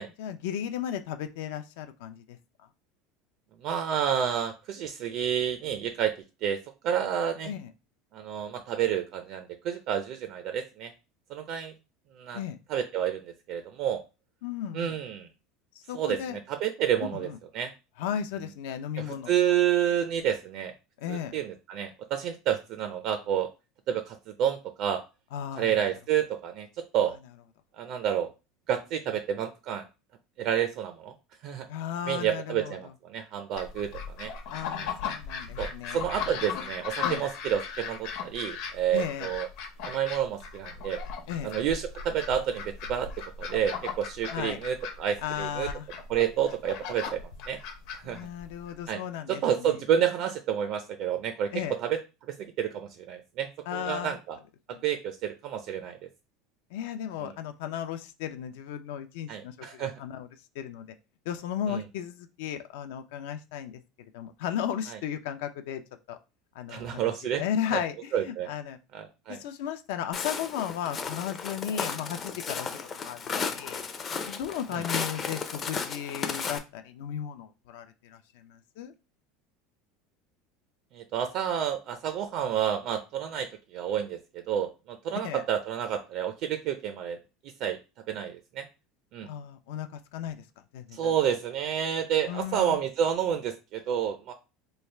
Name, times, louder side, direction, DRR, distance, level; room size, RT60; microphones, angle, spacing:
voice 1, 0.2-2.7 7.4-7.7 12.3-12.6 14.4-15.0 15.7-16.4 17.1-17.4 18.0-19.3 21.0-21.4 25.3-25.8 31.7-32.9 34.5-36.0 37.0-37.2 38.9-39.3 41.3-41.5 44.3-44.6 45.2-45.9 48.0-49.8 51.5-51.8 53.7-54.2 54.7-54.8 56.7-60.3 60.5-60.9 61.2-65.8 66.1-66.2 66.5-68.8 69.3-73.8 74.3-78.9 85.1-85.4 89.2-90.5 90.7-91.1 92.3-92.8, left 9 dB, 75° left, 8 dB, 0.5 m, -35 dB
voice 2, 3.6-6.1 6.4-6.6 6.8-7.5 8.1-10.9 11.3-11.7 12.2-12.4 12.7-14.0 14.7-15.3 15.9-17.3 17.5-17.7 19.0-20.7 21.1-23.5 23.9-25.0 25.6-26.7 26.9-27.1 27.8-28.3 28.7-29.8 30.4-31.1 31.4-31.7 32.1-34.3 34.8-34.9 35.6-39.5 39.8-41.0 41.4-42.6 42.9-43.1 43.4-45.7 46.1-47.2 47.5-47.6 48.0-48.2 48.9-49.0 49.3-51.5 51.8-52.0 52.4-54.4 54.8-56.0 59.3-59.9 61.7-61.8 64.9-65.0 66.7-67.4 67.7-67.8 68.1-68.5 68.9-69.4 74.7-74.8 80.9-83.5 83.7-84.2 84.5-87.2 87.6-87.8 88.1-88.6 89.1-89.3 90.9-94.3, right 9 dB, 45° right, 7 dB, 0.4 m, -29 dB
sound 1, 33.6-48.7, left 6 dB, 55° left, 0.8 m, -37 dB
Walk footsteps, 70.1-76.6, left 5 dB, 20° left, 0.4 m, -34 dB
3.2 x 2.4 x 4.3 m, 0.29 s
cardioid pair, 170°, 0 cm